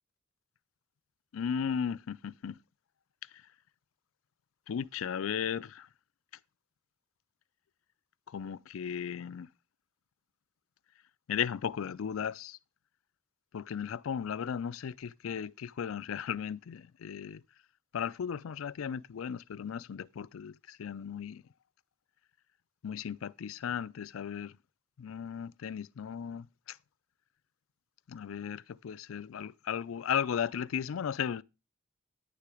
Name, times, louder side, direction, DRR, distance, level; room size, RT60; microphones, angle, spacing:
voice 1, 1.3-2.5 4.7-5.9 8.3-9.5 11.3-12.6 13.5-17.4 17.9-21.4 22.8-24.5 25.0-26.5 28.1-31.4, left 7 dB, 85° left, 0.4 m, -35 dB
9.8 x 6.7 x 4.8 m
head